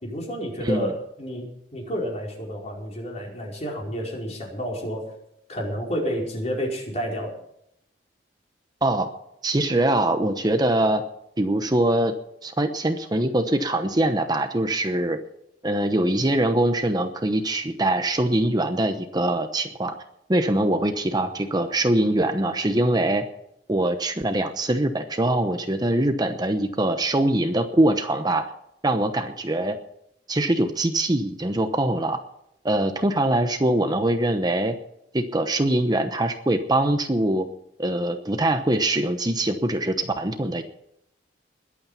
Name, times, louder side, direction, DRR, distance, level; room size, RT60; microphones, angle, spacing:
voice 1, 0.0-5.0 5.5-7.3, equal, 40° left, -1 dB, 5.0 m, -30 dB
voice 2, 0.6-0.9 8.8-9.1 9.4-11.0 11.4-12.1 12.4-15.2 15.6-19.9 20.3-23.3 23.7-28.5 28.8-29.8 30.3-32.2 32.6-34.7 35.1-37.5 37.8-40.6, right 1 dB, 25° right, 7 dB, 0.9 m, -23 dB
21.5 x 8.7 x 5.8 m, 0.77 s
head